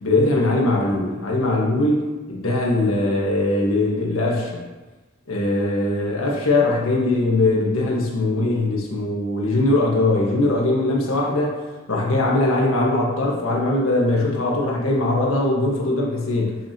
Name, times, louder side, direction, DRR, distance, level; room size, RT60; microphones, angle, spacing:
voice 1, 0.0-4.6 5.3-11.6 11.9-16.6, left 2 dB, 85° left, -2 dB, 1.5 m, -21 dB
7.1 x 5.9 x 2.9 m, 1.2 s
head